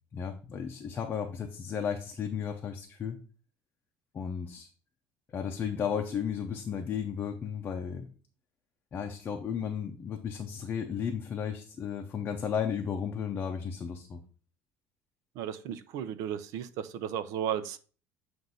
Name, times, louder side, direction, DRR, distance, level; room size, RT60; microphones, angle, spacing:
voice 1, 0.1-3.2 4.1-4.7 5.3-8.1 8.9-14.2, left 7 dB, 30° left, 3 dB, 0.6 m, -34 dB
voice 2, 15.4-17.8, right 9 dB, 65° right, 13 dB, 0.6 m, -34 dB
7.8 x 2.6 x 5.5 m, 0.38 s
cardioid pair, 145°, 6 cm